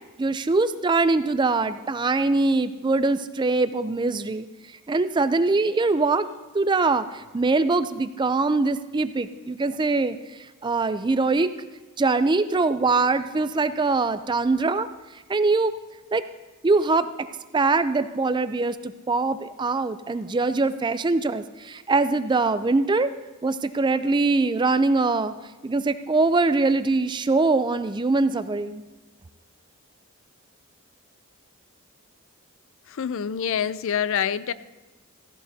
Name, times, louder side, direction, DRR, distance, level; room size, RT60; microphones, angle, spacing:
voice 1, 0.2-4.5 4.9-6.3 6.5-10.2 10.6-11.5 12.0-14.9 15.3-15.7 16.1-16.2 16.6-17.1 17.5-23.1 23.4-25.3 25.6-28.8, right 3 dB, 20° right, 12 dB, 0.4 m, -22 dB
voice 2, 33.0-34.5, left 8 dB, 65° left, 16 dB, 0.4 m, -26 dB
16.0 x 15.5 x 2.7 m, 1.2 s
head